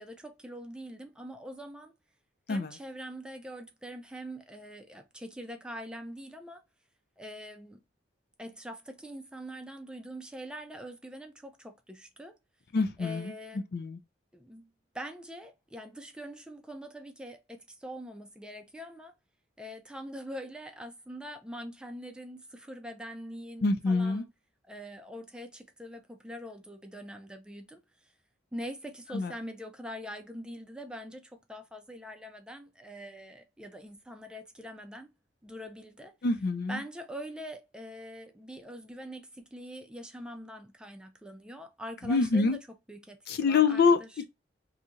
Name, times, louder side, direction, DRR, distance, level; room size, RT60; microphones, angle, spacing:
voice 1, 0.0-1.9 2.5-6.6 7.2-7.8 8.4-12.3 13.0-13.7 14.3-19.1 19.6-24.3 24.7-27.8 28.5-35.1 35.4-36.1 36.7-42.6 42.9-44.2, equal, 5° right, 0.4 m, -43 dB
voice 2, 12.7-13.3 13.7-14.0 23.6-24.2 29.1-29.3 36.2-36.8 42.0-42.6 43.3-44.0, left 4 dB, 55° left, 0.4 m, -25 dB
2.7 x 2.5 x 4.1 m
head